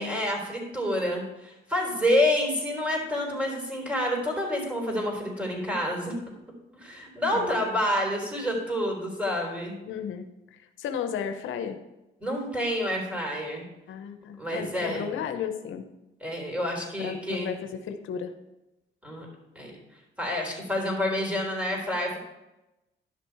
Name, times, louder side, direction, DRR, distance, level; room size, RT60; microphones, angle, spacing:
voice 1, 0.0-6.1 6.7-9.8 12.2-13.6 14.4-15.1 16.2-17.5 19.0-19.3 19.5-19.7 20.2-22.2, left 1 dB, 5° right, 0 dB, 3.5 m, -28 dB
voice 2, 9.8-11.8 13.9-15.8 17.0-18.3, left 7 dB, 80° left, 8 dB, 0.8 m, -34 dB
11.0 x 6.1 x 4.6 m, 0.97 s
cardioid pair, 90°, 20 cm